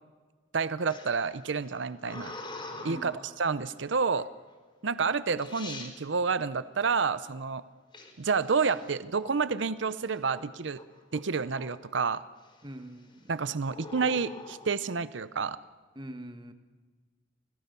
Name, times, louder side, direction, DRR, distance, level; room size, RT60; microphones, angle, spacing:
voice 1, 0.5-2.3 2.8-4.3 4.8-7.6 8.2-10.8 11.1-12.2 13.3-15.6, right 5 dB, 65° right, 15 dB, 0.7 m, -29 dB
sound 1, 0.9-3.4 4.1-4.5 5.1-5.2 5.4-5.9 7.9-9.6 10.0-10.4 10.7-11.9 12.4-12.8 13.6-14.7, left 2 dB, 25° left, 4.4 m, -45 dB
voice 2, 2.9-3.2 12.6-13.3 15.9-16.5, right 1 dB, 25° right, 8 dB, 1.5 m, -43 dB
25.5 x 18.5 x 6.9 m, 1.4 s
head